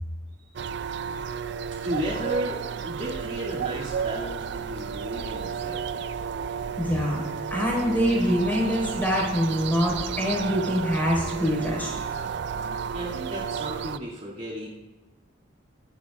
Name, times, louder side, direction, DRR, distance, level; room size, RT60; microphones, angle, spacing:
sound 1, 0.6-14.0, right 6 dB, 65° right, 0.4 m, -32 dB
voice 1, 1.8-6.0 12.9-14.7, right 1 dB, 40° right, -6 dB, 2.3 m, -34 dB
voice 2, 6.8-11.9, equal, 10° left, -3 dB, 4.6 m, -25 dB
23.0 x 10.5 x 2.4 m, 1.1 s
head